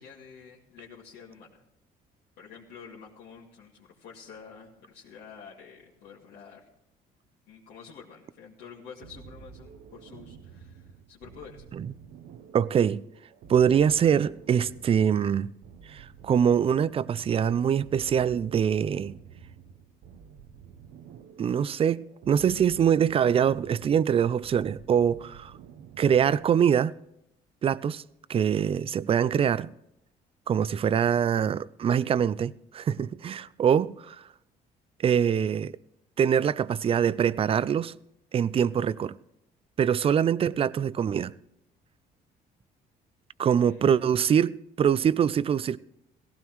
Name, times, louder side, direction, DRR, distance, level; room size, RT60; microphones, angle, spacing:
voice 1, 0.0-1.6 2.4-6.6 7.5-11.6 43.5-44.1, left 6 dB, 75° left, 2.4 m, -48 dB
sound 1, 9.0-26.6, right 7 dB, 80° right, 0.9 m, -50 dB
voice 2, 12.5-13.1 13.5-15.5 15.9-19.2 21.4-25.5 26.0-27.0 27.6-28.0 28.3-29.7 30.5-34.2 35.0-35.7 36.2-37.9 38.3-39.2 39.8-41.3 43.4-45.8, right 8 dB, 35° right, 0.4 m, -24 dB
17.5 x 15.5 x 3.1 m
cardioid pair, 110°, 17 cm